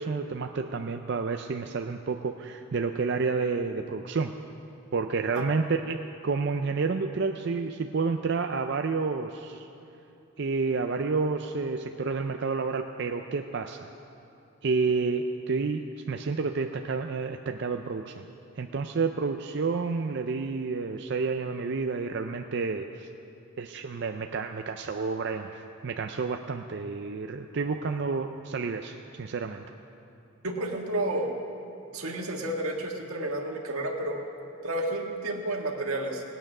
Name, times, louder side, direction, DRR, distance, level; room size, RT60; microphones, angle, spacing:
voice 1, 0.0-4.3 4.9-9.7 10.4-13.9 14.6-18.3 18.6-23.1 23.6-29.6, right 4 dB, 55° right, 5 dB, 0.4 m, -30 dB
voice 2, 30.4-31.3 31.9-34.2 34.6-36.2, right 1 dB, 90° right, 1 dB, 1.7 m, -31 dB
18.5 x 9.0 x 6.0 m, 2.7 s
head